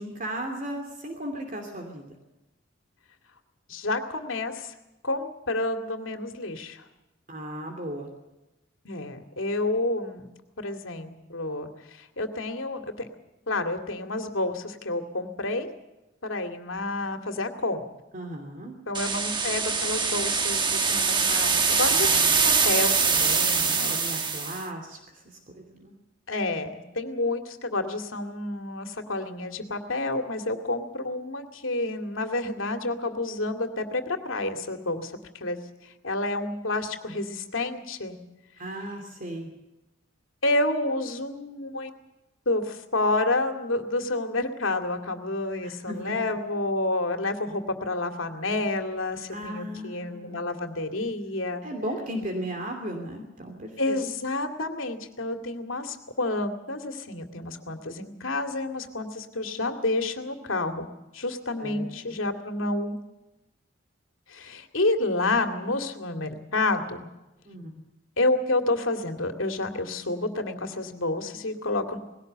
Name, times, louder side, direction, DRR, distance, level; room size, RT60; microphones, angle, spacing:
voice 1, 0.0-2.1 7.3-8.1 18.1-18.8 21.9-22.5 23.9-25.9 38.6-39.5 45.6-46.2 49.3-50.4 51.6-54.0 61.6-61.8 67.4-67.8, equal, 40° right, 3 dB, 2.8 m, -36 dB
voice 2, 3.7-4.7 5.0-6.8 8.8-10.3 10.6-13.1 13.5-15.7 16.2-17.8 18.9-24.3 26.3-35.6 36.0-38.2 40.4-41.9 42.5-51.6 53.8-63.0 64.3-67.1 68.2-72.0, left 2 dB, 85° left, 5 dB, 2.4 m, -29 dB
sound 1, 18.9-24.6, right 5 dB, 25° right, 1.4 m, -23 dB
20.0 x 17.5 x 7.9 m, 0.97 s
head